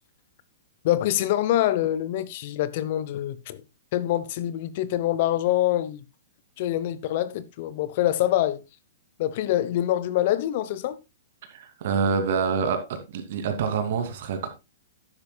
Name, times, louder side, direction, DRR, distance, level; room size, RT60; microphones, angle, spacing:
voice 1, 0.8-3.6 3.9-6.0 6.6-8.6 9.2-11.0, left 13 dB, 50° left, 0.9 m, -25 dB
voice 2, 11.5-14.5, right 5 dB, 55° right, 2.6 m, -26 dB
12.5 x 9.9 x 2.3 m
hypercardioid pair, 115°, 0 cm